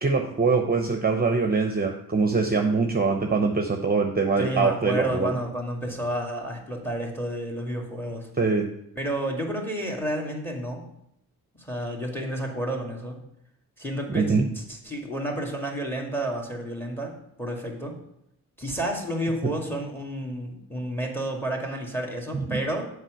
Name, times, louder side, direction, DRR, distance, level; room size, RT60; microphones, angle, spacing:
voice 1, 0.0-5.3 8.4-8.7 14.1-14.4 22.3-22.6, right 4 dB, 25° right, 4 dB, 0.8 m, -23 dB
voice 2, 4.4-8.3 9.0-10.9 11.6-13.2 13.8-18.0 18.6-22.9, right 1 dB, 5° left, 1 dB, 2.1 m, -31 dB
7.3 x 4.8 x 6.4 m, 0.77 s
cardioid pair, 85°, 35 cm